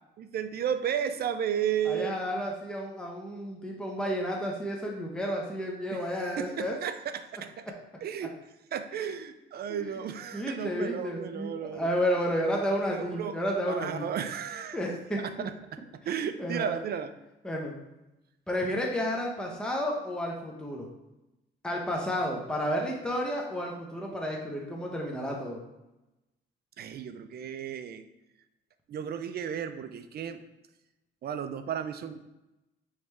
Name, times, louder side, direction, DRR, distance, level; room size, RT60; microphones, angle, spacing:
voice 1, 0.2-2.2 5.9-7.6 8.0-8.4 8.7-11.9 12.7-13.4 13.7-14.8 15.2-15.3 16.1-17.1 26.8-28.1 28.9-30.4 31.2-32.2, right 8 dB, 55° right, 10 dB, 0.4 m, -33 dB
voice 2, 1.8-6.7 9.0-9.1 9.7-10.1 10.3-14.0 14.7-15.5 16.4-16.7 17.4-17.7 18.5-20.9 21.6-25.6, equal, 5° left, -1 dB, 0.8 m, -31 dB
4.9 x 3.2 x 3.3 m, 0.97 s
cardioid pair, 90°, 20 cm